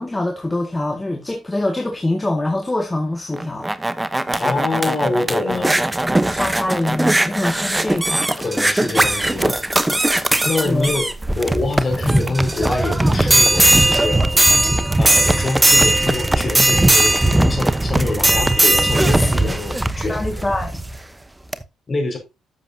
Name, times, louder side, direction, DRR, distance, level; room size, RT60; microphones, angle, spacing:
voice 1, 0.0-3.7 6.3-8.3 10.6-10.9 20.1-20.8, left 2 dB, 15° left, 2.0 m, -24 dB
sound 1, 3.3-21.0 21.5-21.6, right 1 dB, 10° right, 0.9 m, -18 dB
voice 2, 4.4-5.7 8.4-9.6 10.4-11.1 11.4-14.2 15.0-20.3 21.9-22.2, left 2 dB, 35° left, 5.4 m, -25 dB
11.0 x 7.7 x 2.8 m
cardioid pair, 90°, 0 cm